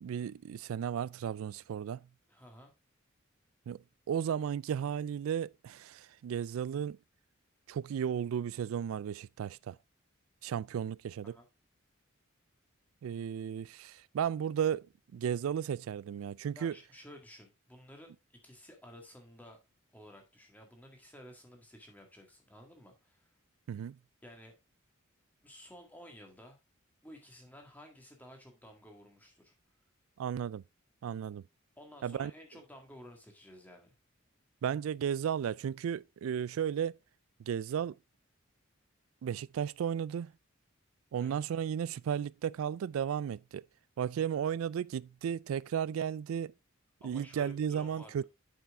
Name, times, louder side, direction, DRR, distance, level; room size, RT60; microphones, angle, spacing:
voice 1, 0.0-2.1 3.7-3.8 4.1-7.0 7.7-9.8 10.4-11.3 13.0-14.9 15.1-16.8 23.7-24.0 30.2-30.6 31.0-31.4 32.0-32.3 34.6-37.0 37.5-38.0 39.2-40.3 41.1-43.6 44.0-46.5 47.0-48.2, right 8 dB, 85° right, 0.3 m, -34 dB
voice 2, 2.3-2.7 11.2-11.5 16.5-19.6 19.9-23.3 24.2-24.6 25.4-26.6 27.0-29.5 31.8-33.9 41.2-41.4 47.0-48.2, equal, 10° left, 1.9 m, -53 dB
7.5 x 5.7 x 3.6 m
head